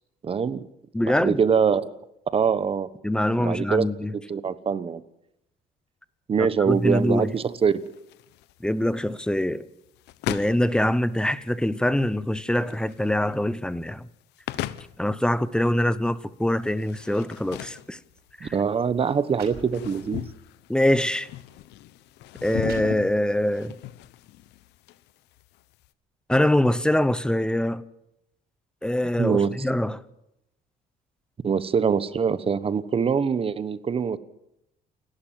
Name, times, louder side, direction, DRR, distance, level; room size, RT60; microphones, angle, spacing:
voice 1, 0.2-0.6 1.0-1.9 2.3-2.9 3.4-3.9 4.3-5.0 6.3-7.8 18.4-20.3 29.2-29.5 31.4-34.2, right 6 dB, 35° right, 1.2 m, -23 dB
voice 2, 0.9-1.4 3.0-4.2 6.4-7.3 8.6-9.7 10.3-14.1 15.0-18.0 18.4-18.5 20.7-21.3 22.4-23.7 26.3-27.8 28.8-30.0, left 1 dB, 5° left, 0.9 m, -24 dB
sound 1, 6.7-25.9, left 14 dB, 85° left, 0.9 m, -39 dB
sound 2, 18.0-18.2 18.9-19.0 19.3-20.2 20.8-20.9 21.7-21.8 22.3-23.5, right 7 dB, 70° right, 5.5 m, -46 dB
29.0 x 12.0 x 7.6 m
cardioid pair, 110°, 17 cm